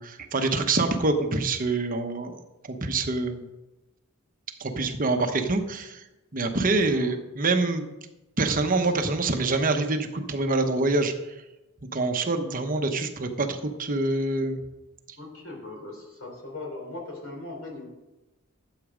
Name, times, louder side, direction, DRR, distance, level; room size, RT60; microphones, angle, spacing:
voice 1, 0.0-2.3 2.7-3.4 4.6-6.0 6.3-7.9 8.4-11.1 11.9-14.6, right 3 dB, 40° right, 6 dB, 1.0 m, -25 dB
voice 2, 6.4-7.1 15.2-17.9, left 2 dB, 75° left, 1 dB, 3.7 m, -40 dB
12.0 x 8.2 x 5.1 m, 1.0 s
head